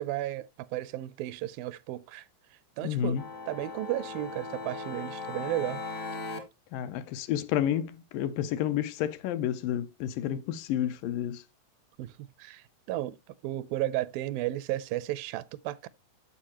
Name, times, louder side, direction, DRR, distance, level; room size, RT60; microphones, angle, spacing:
voice 1, 0.0-2.3 2.8-3.2 3.5-5.8 12.0-13.2 13.4-15.9, right 15 dB, 85° right, 2.3 m, -34 dB
voice 2, 2.8-3.2 6.7-11.4, left 10 dB, 80° left, 2.3 m, -30 dB
sound 1, 3.2-6.4, left 3 dB, 50° left, 0.8 m, -38 dB
14.0 x 4.8 x 2.9 m
omnidirectional pair, 4.1 m